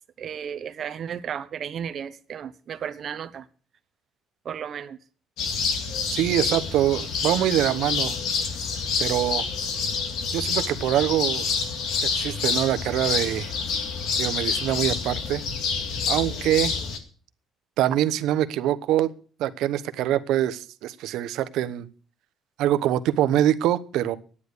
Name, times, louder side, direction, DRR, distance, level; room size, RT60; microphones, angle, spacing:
voice 1, 0.2-3.4 4.4-5.0, right 8 dB, 40° right, 1.0 m, -34 dB
sound 1, 5.4-17.0, left 5 dB, 75° left, 2.2 m, -27 dB
voice 2, 6.1-8.2 9.0-9.5 10.3-11.5 12.0-13.5 14.2-15.4 16.1-16.8 17.8-19.1 19.4-21.9 22.6-24.2, right 12 dB, 75° right, 0.9 m, -24 dB
11.5 x 9.8 x 6.7 m
cardioid pair, 150°, 0 cm